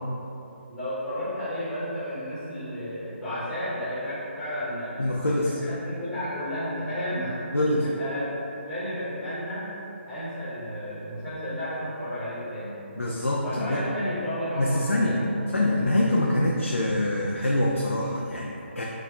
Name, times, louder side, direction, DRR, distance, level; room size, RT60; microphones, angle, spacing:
voice 1, 0.7-5.0 5.4-7.4 7.8-9.7 10.1-12.8 13.4-15.3, equal, ahead, -14 dB, 1.3 m, -32 dB
voice 2, 5.0-5.6 7.5-7.8 13.0-13.8 14.6-15.2 15.5-18.8, left 1 dB, 90° left, -3 dB, 0.4 m, -25 dB
4.7 x 2.5 x 3.3 m, 2.9 s
figure-of-eight pair, 145°, 7 cm